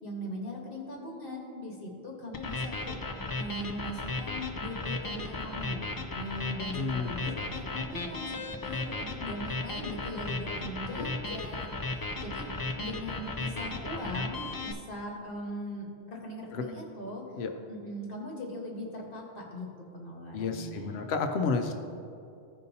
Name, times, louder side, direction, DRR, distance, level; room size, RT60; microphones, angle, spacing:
voice 1, 0.0-3.0 3.4-5.8 6.1-12.5 12.8-17.2 17.7-19.7 19.9-21.1, equal, 60° left, -2 dB, 1.5 m, -40 dB
sound 1, 2.3-14.7, left 2 dB, 35° left, 0.3 m, -35 dB
voice 2, 6.7-7.3 11.0-11.1 16.5-16.6 17.4-17.5 20.3-21.7, left 4 dB, 90° left, 6 dB, 0.9 m, -31 dB
15.5 x 5.3 x 2.7 m, 2.6 s
omnidirectional pair, 1.0 m